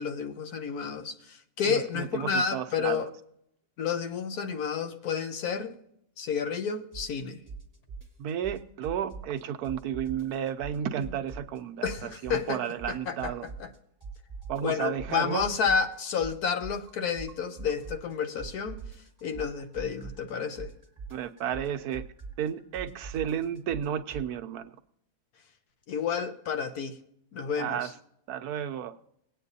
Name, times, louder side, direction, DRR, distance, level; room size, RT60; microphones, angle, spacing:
voice 1, 0.0-3.1 3.8-5.7 6.2-7.4 11.8-12.6 12.9-13.7 14.6-18.8 19.2-20.7 25.9-26.9 27.3-27.9, left 6 dB, 75° left, 1.4 m, -30 dB
voice 2, 1.7-3.1 8.2-11.9 12.2-13.5 14.5-15.5 21.1-22.0 22.4-24.7 27.6-27.9 28.3-28.9, right 9 dB, 80° right, 1.2 m, -32 dB
sound 1, 6.9-7.2 7.5-9.4 9.6-11.6 11.8-13.8 14.0-18.1 18.4-24.3, right 5 dB, 10° right, 1.5 m, -42 dB
19.0 x 9.0 x 2.7 m
omnidirectional pair, 1.6 m